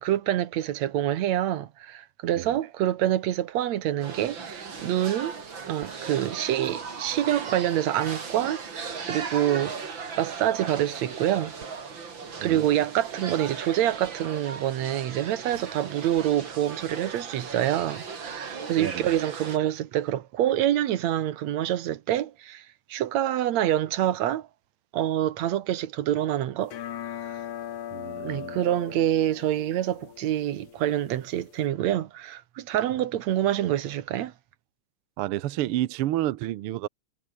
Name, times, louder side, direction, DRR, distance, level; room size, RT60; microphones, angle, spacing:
voice 1, 0.0-5.3 5.7-8.6 9.1-11.5 12.4-22.6 22.9-24.5 24.9-26.8 28.2-34.3, right 12 dB, 65° right, 2.3 m, -26 dB
sound 1, 4.0-19.6, right 5 dB, 40° right, 3.3 m, -38 dB
sound 2, 26.6-31.7, left 10 dB, 75° left, 3.1 m, -40 dB
voice 2, 27.9-28.6 35.2-36.9, right 14 dB, 80° right, 1.2 m, -30 dB
omnidirectional pair, 3.6 m